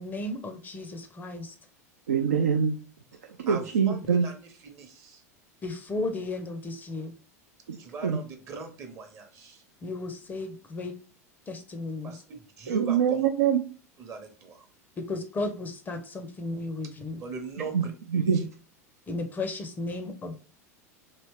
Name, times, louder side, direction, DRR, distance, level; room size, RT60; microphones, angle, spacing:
voice 1, 0.0-1.6 5.6-7.1 9.8-11.0 11.5-12.1 15.0-17.2 19.1-20.4, left 2 dB, 20° left, 7 dB, 0.5 m, -34 dB
voice 2, 2.1-2.8 3.4-4.3 7.7-7.8 8.0-8.2 12.7-13.6 17.7-17.8 18.1-18.4, right 7 dB, 70° right, 2 dB, 0.4 m, -24 dB
voice 3, 3.5-5.2 7.8-9.6 12.0-13.3 14.0-14.7 17.2-18.5, right 4 dB, 35° right, 5 dB, 0.8 m, -41 dB
3.0 x 2.8 x 3.1 m, 0.38 s
figure-of-eight pair, 80°, 9 cm